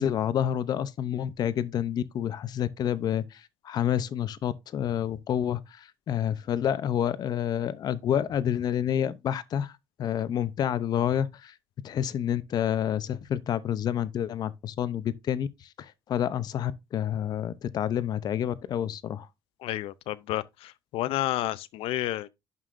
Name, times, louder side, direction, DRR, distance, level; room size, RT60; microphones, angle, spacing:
voice 1, 0.0-9.7 10.0-11.5 11.8-19.3, left 10 dB, 45° left, 0.6 m, -29 dB
voice 2, 19.6-22.3, left 15 dB, 90° left, 0.6 m, -31 dB
11.0 x 5.6 x 2.6 m
cardioid pair, 165°, 9 cm